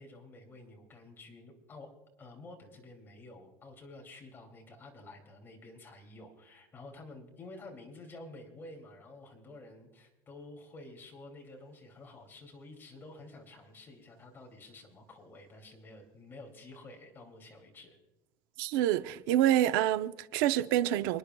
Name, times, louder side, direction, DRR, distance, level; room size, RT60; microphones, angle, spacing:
voice 1, 0.0-1.9 2.2-18.0, left 2 dB, 20° left, 2.7 m, -50 dB
voice 2, 18.6-21.2, right 12 dB, 75° right, 0.7 m, -27 dB
29.5 x 10.0 x 2.3 m
cardioid pair, 150°, 11 cm